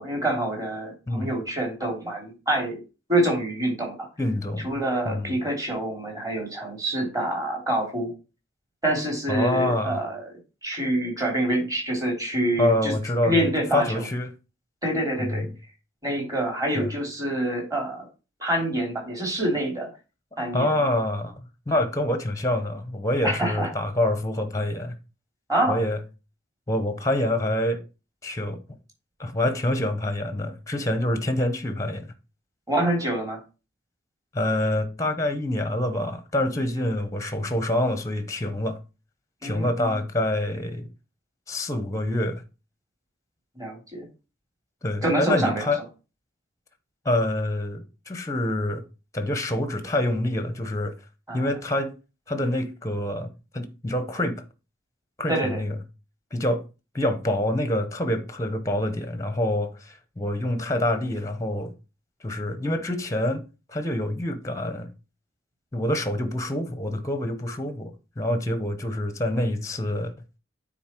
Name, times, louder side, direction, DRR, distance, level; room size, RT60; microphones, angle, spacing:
voice 1, 0.0-2.8 3.1-4.1 4.6-8.1 8.8-10.3 10.6-12.9 13.2-14.0 14.8-15.4 16.0-18.0 18.4-19.9 20.4-20.7 23.2-23.7 25.5-25.8 32.7-33.4 39.4-40.0 43.6-44.1 45.0-45.7 51.3-51.4 55.3-55.6, right 1 dB, 20° right, 3.1 m, -26 dB
voice 2, 4.2-4.7 5.0-5.4 9.3-10.0 12.6-14.3 15.2-15.5 16.7-16.9 20.5-25.0 25.7-26.0 26.7-27.8 28.2-28.6 29.2-32.1 34.3-38.8 39.4-40.9 41.5-42.4 44.8-45.8 47.0-48.8 49.1-50.9 51.3-51.9 52.3-54.4 55.2-55.8 56.3-56.6 56.9-61.7 62.2-63.4 63.7-64.9 65.7-70.1, left 1 dB, 15° left, 0.8 m, -26 dB
9.2 x 4.1 x 4.5 m
head